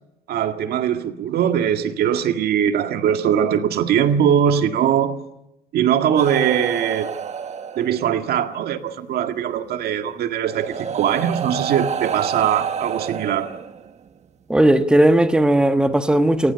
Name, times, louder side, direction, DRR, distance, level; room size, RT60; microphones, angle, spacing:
voice 1, 0.3-5.2 5.7-7.1 7.8-13.5, right 9 dB, 70° right, 1.9 m, -21 dB
sound 1, 6.2-8.3 9.6-9.7 10.5-14.1 15.1-15.3, right 7 dB, 40° right, 1.4 m, -29 dB
voice 2, 14.5-16.5, right 1 dB, 5° right, 1.3 m, -16 dB
28.0 x 18.5 x 6.9 m
cardioid pair, 110°, 17 cm